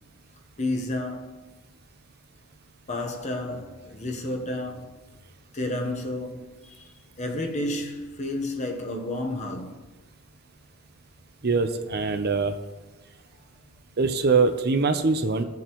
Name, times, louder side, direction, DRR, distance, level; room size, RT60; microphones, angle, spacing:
voice 1, 0.6-1.5 2.9-5.1 5.5-6.8 7.2-9.8, left 1 dB, 30° left, 1.0 m, -31 dB
voice 2, 11.4-12.6 14.0-15.4, right 4 dB, 45° right, 0.6 m, -23 dB
16.5 x 7.1 x 3.0 m
head